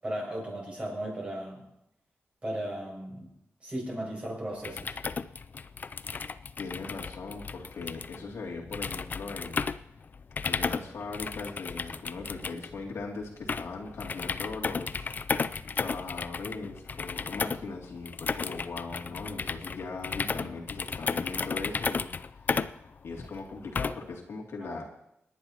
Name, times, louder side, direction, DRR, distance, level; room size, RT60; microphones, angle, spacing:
voice 1, 0.0-1.6 2.4-3.3 3.6-4.9 24.6-24.8, right 1 dB, 25° right, -3 dB, 6.6 m, -36 dB
sound 1, 4.5-24.2, left 5 dB, 40° left, 0.4 m, -34 dB
voice 2, 6.6-9.6 10.4-15.1 15.4-22.1 23.0-24.9, left 4 dB, 85° left, -1 dB, 2.6 m, -39 dB
27.5 x 11.0 x 2.9 m, 0.82 s
wide cardioid pair, 165°, 4 cm